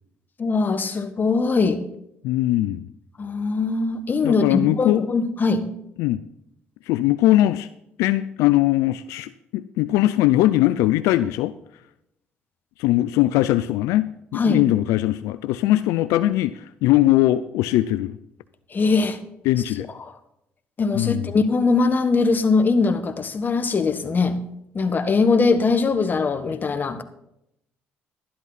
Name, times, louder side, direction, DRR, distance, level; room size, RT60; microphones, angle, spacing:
voice 1, 0.4-1.8 3.2-5.7 14.3-14.6 18.7-19.2 20.0-20.1 20.8-24.4 24.7-27.0, left 4 dB, 40° left, 10 dB, 1.3 m, -21 dB
voice 2, 2.2-2.8 4.2-5.0 6.0-6.2 6.9-7.7 8.0-11.5 12.8-18.2 19.5-19.9 20.9-21.3, left 15 dB, 85° left, 13 dB, 0.4 m, -20 dB
12.0 x 11.0 x 4.1 m, 0.79 s
supercardioid pair, 65°, 5 cm